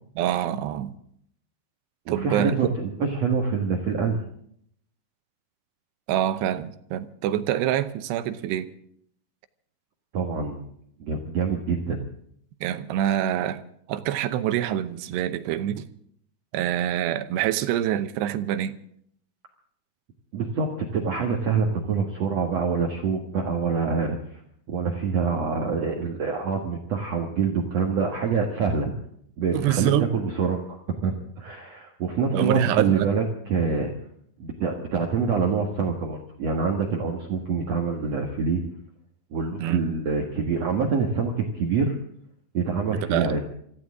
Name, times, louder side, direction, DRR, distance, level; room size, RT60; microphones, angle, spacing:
voice 1, 0.2-0.9 2.1-2.6 6.1-8.7 12.6-13.6 13.9-15.9 16.5-18.8 29.5-30.1 32.3-33.1 39.6-39.8 42.9-43.3, right 11 dB, 85° right, 11 dB, 3.0 m, -26 dB
voice 2, 2.1-4.2 10.1-10.7 11.0-12.0 20.3-24.2 24.7-28.9 29.4-33.9 34.4-38.6 39.3-41.9 42.5-43.4, right 5 dB, 55° right, 1 dB, 2.1 m, -26 dB
25.0 x 15.0 x 3.7 m, 0.67 s
omnidirectional pair, 4.8 m